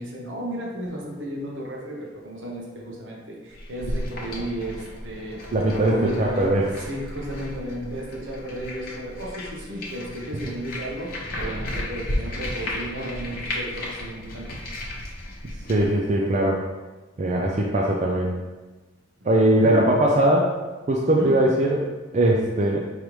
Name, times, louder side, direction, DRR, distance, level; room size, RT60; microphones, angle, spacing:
voice 1, 0.0-5.4 5.9-14.6 19.2-19.3 19.6-19.8 21.1-21.3, right 1 dB, 75° right, -2 dB, 1.0 m, -34 dB
sound 1, 3.5-15.9, left 1 dB, 45° left, 0.9 m, -34 dB
voice 2, 5.5-6.7 15.7-16.6 17.2-18.3 19.2-20.5 20.9-21.8 22.1-22.8, right 1 dB, 35° right, -2 dB, 0.4 m, -20 dB
5.2 x 3.2 x 3.1 m, 1.2 s
head